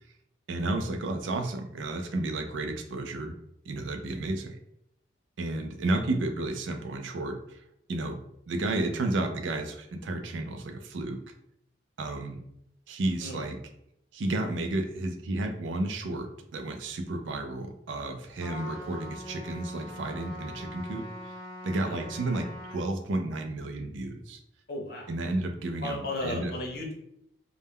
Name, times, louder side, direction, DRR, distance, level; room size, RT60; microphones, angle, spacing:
voice 1, 0.5-3.3 3.7-4.6 5.4-7.6 7.9-8.2 8.5-11.2 12.0-12.4 12.9-13.6 14.1-21.3 21.6-24.4 25.1-26.5, right 2 dB, 75° right, 5 dB, 0.4 m, -32 dB
voice 2, 13.2-13.5 21.8-22.0 24.7-25.1 25.8-26.9, left 2 dB, 55° left, 0 dB, 0.6 m, -35 dB
Trumpet, 18.4-22.8, left 1 dB, 20° left, 0.7 m, -42 dB
2.2 x 2.1 x 3.4 m, 0.77 s
head